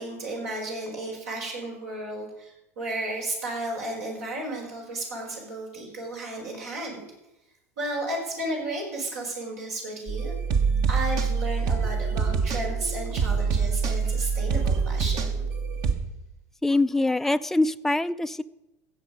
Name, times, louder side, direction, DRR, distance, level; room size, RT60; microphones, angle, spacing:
voice 1, 0.0-7.0 7.8-10.3 10.9-15.3, right 1 dB, 75° right, -2 dB, 4.7 m, -33 dB
sound 1, 10.1-15.9, right 5 dB, 45° right, 1.4 m, -25 dB
voice 2, 16.6-18.4, left 2 dB, 5° left, 11 dB, 0.4 m, -24 dB
16.5 x 7.3 x 5.3 m, 0.90 s
hypercardioid pair, 75°, 8 cm